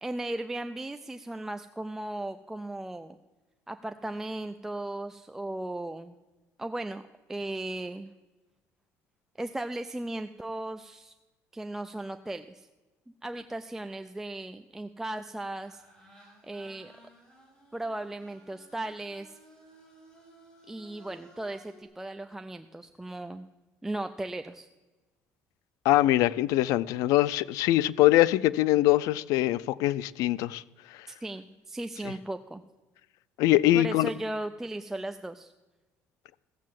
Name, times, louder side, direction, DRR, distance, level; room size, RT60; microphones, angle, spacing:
voice 1, 0.0-3.2 3.7-6.1 6.6-7.0 7.3-8.1 9.4-11.1 11.5-12.7 13.2-15.8 16.2-16.9 17.7-19.4 20.7-23.5 23.8-24.7 31.1-32.6 33.7-35.5, right 1 dB, 5° right, 0.4 m, -36 dB
sound 1, 15.5-21.8, right 1 dB, 15° left, 4.2 m, -56 dB
voice 2, 25.8-30.6 33.4-34.1, left 15 dB, 85° left, 0.4 m, -23 dB
15.0 x 7.4 x 7.5 m
cardioid pair, 150°, 6 cm